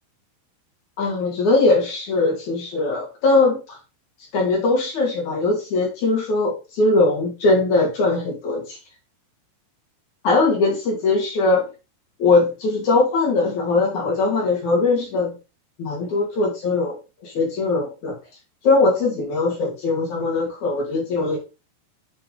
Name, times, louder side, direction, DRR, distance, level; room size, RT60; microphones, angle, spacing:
voice 1, 1.0-3.8 4.3-8.8 10.2-11.7 12.2-15.4 15.8-18.2 18.6-21.4, left 3 dB, 55° left, -2 dB, 2.7 m, -20 dB
7.6 x 4.5 x 3.7 m, 0.29 s
omnidirectional pair, 4.7 m